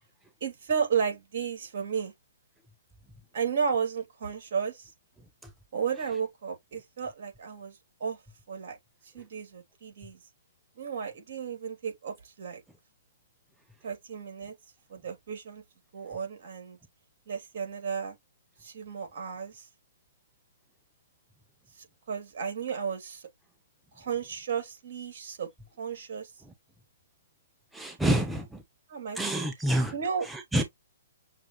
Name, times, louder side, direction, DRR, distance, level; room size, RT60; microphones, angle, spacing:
voice 1, 0.4-2.1 3.3-4.9 5.7-8.2 8.5-8.8 9.1-10.2 10.8-12.6 13.8-14.5 14.9-15.6 15.9-16.8 17.3-18.2 18.6-19.7 21.8-23.3 23.9-25.5 25.8-26.3 28.9-29.2 29.9-30.3, right 6 dB, 55° right, 2.7 m, -33 dB
voice 2, 27.7-28.6 29.2-29.9 30.3-30.6, right 1 dB, 5° right, 0.6 m, -27 dB
6.5 x 2.4 x 3.0 m
hypercardioid pair, 140°, 0 cm